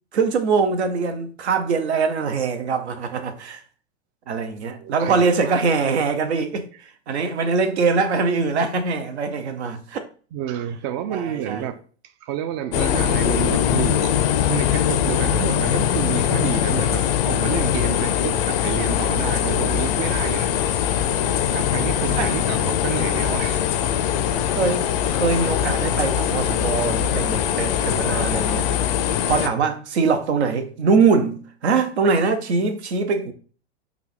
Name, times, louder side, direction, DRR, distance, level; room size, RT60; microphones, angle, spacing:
voice 1, 0.1-3.6 4.3-6.7 7.1-10.1 11.1-11.7 22.1-22.3 24.4-28.7 29.3-33.3, right 5 dB, 75° right, 0.7 m, -22 dB
voice 2, 4.8-5.6 10.3-11.8 12.2-14.2 14.5-20.9 21.5-23.7 29.6-29.7, right 9 dB, 40° right, 0.4 m, -29 dB
sound 1, 12.7-29.5, left 10 dB, 55° left, 0.5 m, -22 dB
3.4 x 2.3 x 3.7 m
hypercardioid pair, 100°, 33 cm